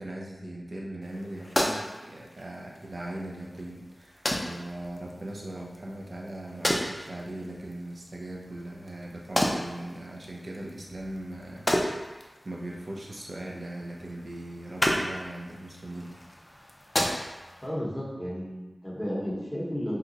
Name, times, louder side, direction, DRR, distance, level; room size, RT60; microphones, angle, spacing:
voice 1, 0.0-11.7 12.0-16.2, right 1 dB, 60° right, -2 dB, 0.6 m, -39 dB
sound 1, 1.0-17.7, equal, 25° left, 0.5 m, -34 dB
voice 2, 17.6-20.0, equal, ahead, -7 dB, 1.0 m, -33 dB
2.8 x 2.3 x 3.8 m, 1.1 s
wide cardioid pair, 60°, 0 cm